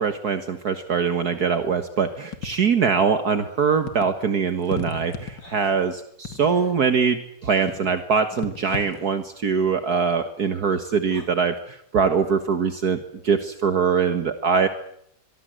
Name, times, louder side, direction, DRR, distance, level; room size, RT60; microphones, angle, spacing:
voice 1, 0.0-2.1 2.4-5.1 5.5-5.9 6.4-7.2 7.5-11.5 11.9-13.0 13.3-14.7, right 6 dB, 60° right, 8 dB, 1.9 m, -22 dB
sound 1, 2.3-2.9 3.9-4.2 4.6-5.7 6.3-6.7 7.7-8.0 8.4-9.0, left 5 dB, 80° left, 2.7 m, -36 dB
sound 2, 4.7-4.9 5.4-5.8 6.4-6.7 7.4-7.8 8.6-9.1 11.0-11.2, left 1 dB, 35° left, 5.9 m, -46 dB
24.0 x 23.5 x 7.7 m, 0.70 s
omnidirectional pair, 1.9 m